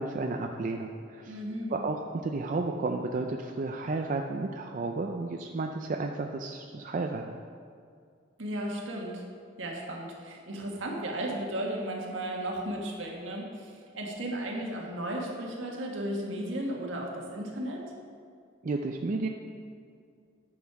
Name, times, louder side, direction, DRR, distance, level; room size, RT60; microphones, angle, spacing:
voice 1, 0.0-1.4 1.7-7.4 18.6-19.3, right 3 dB, 40° right, 3 dB, 0.4 m, -32 dB
voice 2, 1.3-1.8 8.4-9.2 9.6-17.8, right 1 dB, 75° right, -1 dB, 1.6 m, -35 dB
10.5 x 6.5 x 4.8 m, 2.3 s
head